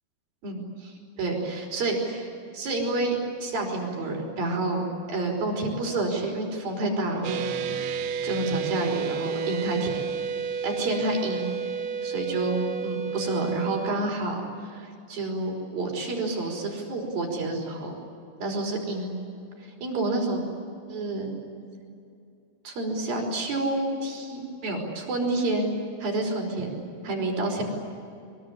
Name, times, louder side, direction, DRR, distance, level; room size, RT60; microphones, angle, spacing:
voice 1, 1.2-2.3 2.5-3.2 3.4-4.8 5.1-7.4 8.2-10.1 10.6-11.5 12.0-18.0 18.4-19.1 19.8-20.4 20.9-21.4 22.6-25.7 26.0-27.6, right 2 dB, 55° right, 1 dB, 6.7 m, -29 dB
sound 1, 7.2-13.9, right 6 dB, 85° right, 3.8 m, -31 dB
24.0 x 23.5 x 10.0 m, 2.6 s
omnidirectional pair, 5.1 m